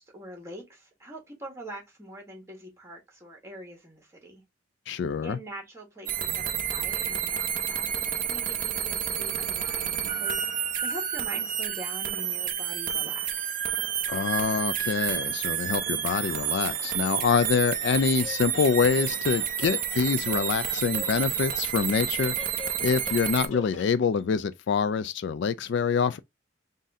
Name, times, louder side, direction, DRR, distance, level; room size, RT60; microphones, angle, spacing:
voice 1, 0.0-4.4 5.2-13.5, right 1 dB, 15° right, 1.5 m, -44 dB
voice 2, 4.9-5.4 14.1-22.3 22.8-26.2, left 6 dB, 60° left, 0.3 m, -26 dB
sound 1, 6.1-23.5, right 9 dB, 45° right, 0.6 m, -30 dB
sound 2, 16.2-17.5 17.8-24.2, left 4 dB, 80° left, 1.3 m, -44 dB
4.0 x 2.6 x 3.6 m
head